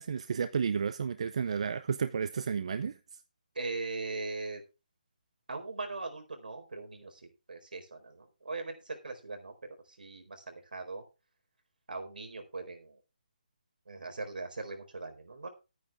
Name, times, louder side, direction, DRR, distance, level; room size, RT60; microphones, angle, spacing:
voice 1, 0.0-3.0, right 6 dB, 45° right, 0.6 m, -32 dB
voice 2, 3.5-4.6 5.5-11.0 11.9-13.0 13.9-15.5, right 3 dB, 80° right, 4.2 m, -40 dB
12.5 x 9.4 x 3.6 m
hypercardioid pair, 170°, 5 cm